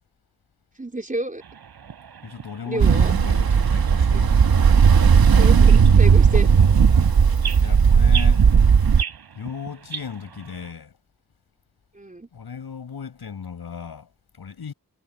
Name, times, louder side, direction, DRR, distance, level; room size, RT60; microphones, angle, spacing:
voice 1, 0.8-1.4 2.7-3.1 5.4-6.5 11.9-12.3, right 1 dB, 20° right, 4.0 m, -29 dB
sound 1, 1.4-10.7, right 7 dB, 85° right, 7.3 m, -39 dB
voice 2, 2.2-4.4 7.6-8.5 9.3-10.9 12.3-14.7, left 6 dB, 80° left, 6.5 m, -36 dB
Ocean, 2.8-9.0, right 6 dB, 70° right, 1.9 m, -15 dB
cardioid pair, 55°, 37 cm